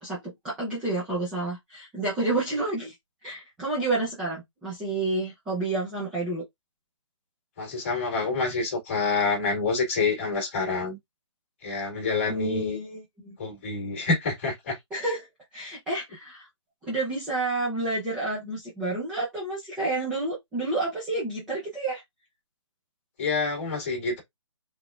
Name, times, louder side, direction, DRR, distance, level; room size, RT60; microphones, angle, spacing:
voice 1, 0.0-2.9 3.2-6.4 12.3-13.4 14.9-15.3 15.5-16.5 16.8-22.0, right 2 dB, 5° right, 0.4 m, -30 dB
voice 2, 7.6-11.0 11.6-12.8 13.4-14.8 23.2-24.2, left 4 dB, 25° left, 1.8 m, -27 dB
3.9 x 3.4 x 2.4 m
hypercardioid pair, 175°, 16 cm